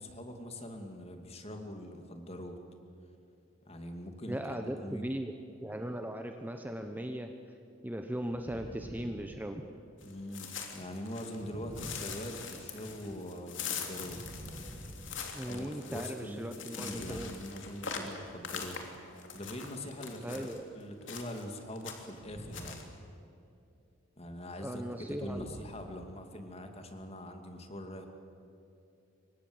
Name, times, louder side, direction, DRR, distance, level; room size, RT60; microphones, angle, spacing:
voice 1, 0.0-2.6 3.7-5.1 10.0-14.2 15.4-16.5 16.8-18.8 19.3-20.5 20.7-22.8 24.2-28.1, left 1 dB, 30° left, 5 dB, 2.5 m, -43 dB
voice 2, 4.3-5.3 5.6-7.3 7.8-9.6 15.3-17.3 20.2-20.6 24.6-25.5, right 1 dB, 10° right, 5 dB, 0.9 m, -38 dB
sound 1, 8.3-9.9 11.4-12.9 13.7-15.9 16.6-18.2 19.3-20.1 22.1-23.0 23.3-23.6 25.0-26.6, right 1 dB, 25° right, 1.6 m, -49 dB
sound 2, 10.0-11.4 11.8-20.6 21.1-21.5 21.8-22.2 22.5-22.8, left 6 dB, 65° left, 3.1 m, -42 dB
28.0 x 24.5 x 7.9 m, 2.7 s
head